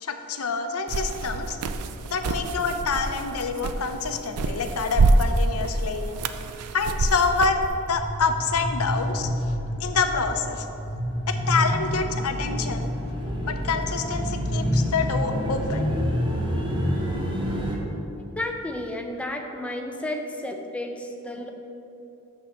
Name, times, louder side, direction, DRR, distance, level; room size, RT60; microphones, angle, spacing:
voice 1, 0.0-1.6 2.1-6.2 6.7-7.6 7.9-9.3 9.8-10.7 11.3-13.0 13.4-15.9, left 4 dB, 70° left, 6 dB, 0.7 m, -27 dB
sound 1, 0.9-7.7, right 2 dB, 85° right, 0.5 m, -26 dB
sound 2, 7.6-17.8, equal, 20° right, 1.2 m, -28 dB
voice 2, 18.4-21.5, left 1 dB, 5° left, 2 dB, 0.7 m, -32 dB
6.5 x 6.3 x 7.1 m, 2.9 s
head